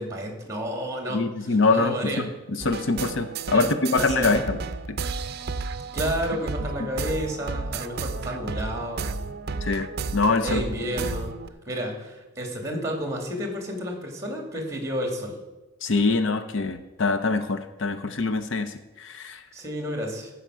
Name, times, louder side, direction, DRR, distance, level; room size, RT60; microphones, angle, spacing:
voice 1, 0.0-2.3 3.5-4.3 5.9-9.1 10.4-11.4 11.7-15.4 19.5-20.3, equal, 15° right, 2 dB, 2.4 m, -31 dB
voice 2, 1.1-4.6 4.9-5.0 6.8-6.9 9.6-10.6 15.8-19.4, left 3 dB, 60° left, 8 dB, 0.7 m, -24 dB
sound 1, 2.6-11.5, right 4 dB, 50° right, 0.6 m, -32 dB
14.5 x 5.8 x 6.2 m, 1.1 s
head